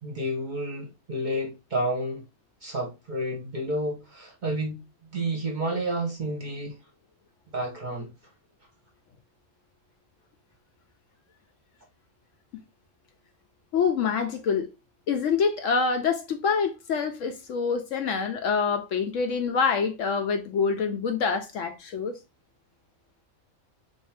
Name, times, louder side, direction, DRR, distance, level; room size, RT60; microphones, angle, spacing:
voice 1, 0.0-2.2 2.6-6.7 7.5-8.1, right 1 dB, 40° right, 0.8 m, -30 dB
voice 2, 13.7-14.7 15.1-22.2, left 5 dB, 70° left, 0.8 m, -26 dB
3.5 x 2.6 x 3.1 m
omnidirectional pair, 1.5 m